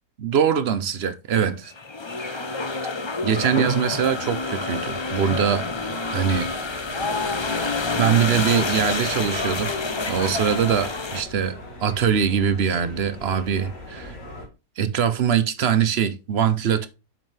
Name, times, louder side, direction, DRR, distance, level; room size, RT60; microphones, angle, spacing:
voice 1, 0.2-1.7 2.2-2.5 3.2-5.7 6.1-6.5 7.9-9.7 10.1-14.2 14.8-16.9, right 8 dB, 50° right, 0.8 m, -22 dB
sound 1, 1.7-11.2, left 3 dB, 40° left, 0.3 m, -28 dB
sound 2, 3.8-14.5, left 1 dB, 85° left, 3.3 m, -41 dB
7.8 x 6.1 x 3.3 m
omnidirectional pair, 1.8 m